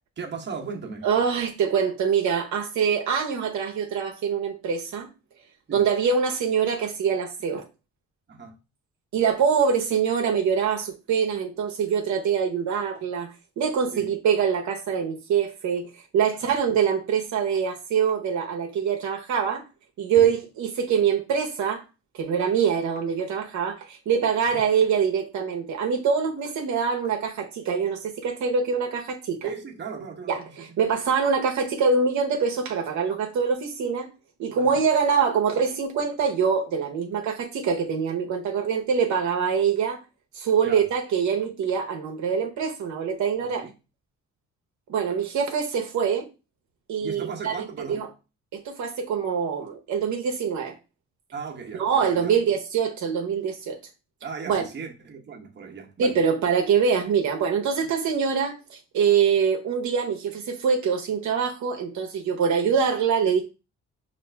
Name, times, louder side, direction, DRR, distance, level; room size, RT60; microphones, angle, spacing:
voice 1, 0.2-1.1 5.7-5.9 8.3-8.5 13.9-14.1 16.4-16.5 20.2-20.3 24.4-24.6 29.4-30.8 34.6-34.8 40.6-40.8 43.4-43.7 47.0-48.0 51.3-52.4 54.2-56.1, right 5 dB, 35° right, 1.0 m, -37 dB
voice 2, 1.0-5.1 5.7-7.6 9.1-19.6 20.0-21.8 22.1-29.5 30.3-34.1 34.4-40.0 40.3-43.6 44.9-46.3 46.9-47.5 47.9-48.1 48.5-50.8 51.8-53.8 54.5-54.6 56.0-63.4, right 6 dB, 70° right, 0.8 m, -24 dB
5.1 x 2.5 x 3.3 m
cardioid pair, 90°, 30 cm